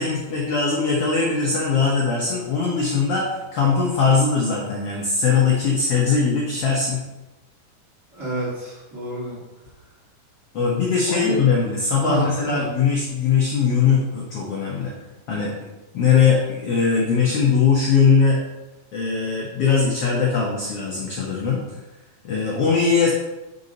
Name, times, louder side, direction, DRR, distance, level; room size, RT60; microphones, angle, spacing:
voice 1, 0.0-7.0 10.5-14.9 15.3-15.5 15.9-18.4 18.9-21.6 22.2-23.1, left 5 dB, 90° left, -3 dB, 1.3 m, -20 dB
voice 2, 8.1-9.4 11.1-11.4 12.0-12.6, equal, 30° right, -7 dB, 1.6 m, -28 dB
6.1 x 5.4 x 4.0 m, 1.1 s
omnidirectional pair, 4.1 m